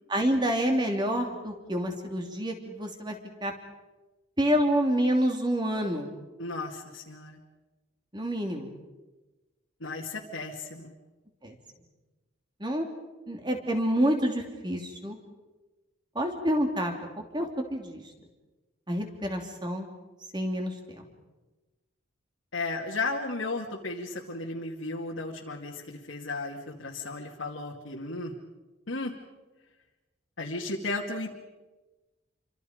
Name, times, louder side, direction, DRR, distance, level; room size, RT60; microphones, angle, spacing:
voice 1, 0.1-3.2 3.4-3.5 4.4-6.1 8.1-8.7 11.4-11.6 12.6-12.9 13.3-15.2 16.1-16.9 17.3-18.0 18.9-19.9 20.3-21.0, equal, 20° right, 3 dB, 3.0 m, -28 dB
voice 2, 6.4-7.4 9.8-10.9 22.5-28.3 28.9-29.1 30.4-31.4, left 3 dB, 75° left, -2 dB, 2.4 m, -34 dB
28.5 x 25.0 x 5.2 m, 1.1 s
head